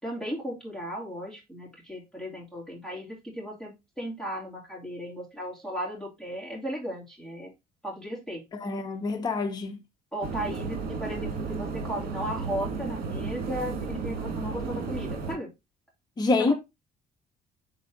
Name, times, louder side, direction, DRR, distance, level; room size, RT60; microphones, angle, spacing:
voice 1, 0.0-7.5 7.8-8.4 10.1-15.5 16.4-16.5, equal, 5° left, 2.6 m, -35 dB
voice 2, 8.5-9.8 16.2-16.5, left 3 dB, 25° left, 0.8 m, -26 dB
sound 1, 10.2-15.4, right 4 dB, 65° right, 1.6 m, -33 dB
6.3 x 4.1 x 3.8 m
cardioid pair, 110°, 17 cm